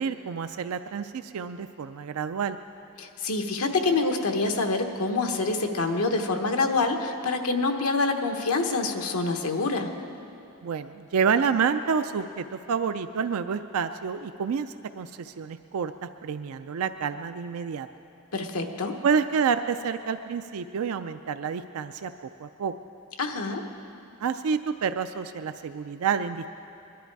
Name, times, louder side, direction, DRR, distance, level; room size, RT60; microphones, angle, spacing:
voice 1, 0.0-2.6 10.6-17.9 19.0-22.1 22.4-22.7 24.2-26.5, right 6 dB, 75° right, 10 dB, 0.4 m, -28 dB
voice 2, 3.0-9.9 18.3-19.0 23.2-23.6, left 3 dB, 75° left, 4 dB, 1.1 m, -26 dB
21.5 x 11.5 x 4.7 m, 2.8 s
head